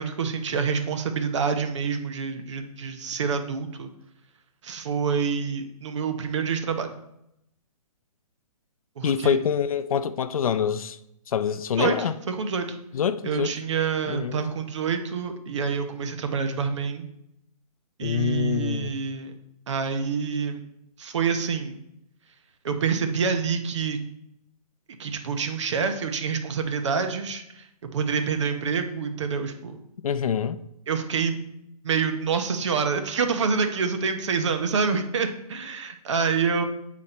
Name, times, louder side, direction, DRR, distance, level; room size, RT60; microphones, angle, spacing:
voice 1, 0.0-3.9 4.6-6.9 9.0-9.4 11.8-12.7 13.2-17.1 18.0-19.3 19.7-20.6 21.0-21.8 22.6-24.0 25.0-27.7 27.9-29.8 30.9-31.4 31.8-36.6, right 5 dB, 50° right, 0.9 m, -27 dB
voice 2, 9.0-11.0 11.3-12.1 12.9-13.5 14.0-14.4 18.0-18.9 30.0-30.6, left 8 dB, 65° left, 0.5 m, -25 dB
8.5 x 4.2 x 4.2 m
hypercardioid pair, 175°, 20 cm